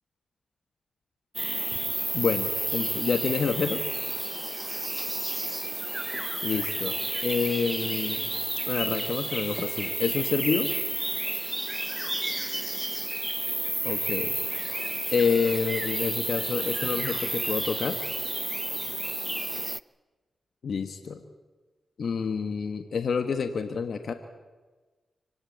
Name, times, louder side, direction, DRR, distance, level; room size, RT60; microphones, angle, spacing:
sound 1, 1.3-19.8, right 1 dB, 15° right, 0.8 m, -31 dB
voice 1, 2.1-3.8 6.4-8.2 8.7-10.7 13.8-14.4 15.1-18.0 20.6-21.2 22.0-24.1, left 5 dB, 70° left, 8 dB, 1.5 m, -28 dB
25.5 x 17.5 x 8.7 m, 1.3 s
supercardioid pair, 45°, 0 cm